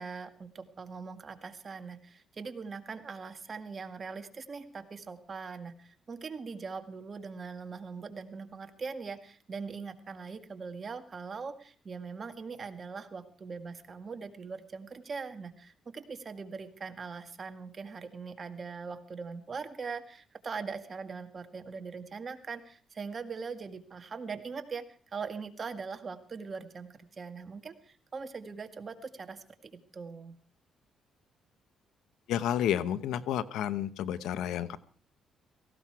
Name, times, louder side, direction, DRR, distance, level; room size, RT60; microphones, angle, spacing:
voice 1, 0.0-30.3, right 5 dB, 40° right, 8 dB, 1.9 m, -41 dB
voice 2, 32.3-34.8, left 10 dB, 85° left, 15 dB, 0.9 m, -31 dB
17.5 x 16.0 x 4.7 m, 0.43 s
cardioid pair, 90°, 0 cm